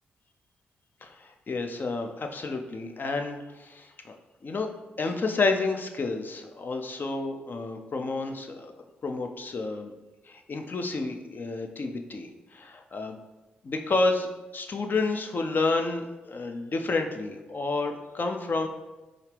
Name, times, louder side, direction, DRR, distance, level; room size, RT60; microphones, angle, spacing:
voice 1, 1.0-4.1 4.4-4.7 5.0-8.7 9.0-9.9 10.3-13.2 13.6-18.7, left 3 dB, 45° left, 4 dB, 0.5 m, -30 dB
4.2 x 2.5 x 3.3 m, 1.1 s
hypercardioid pair, 40°, 4 cm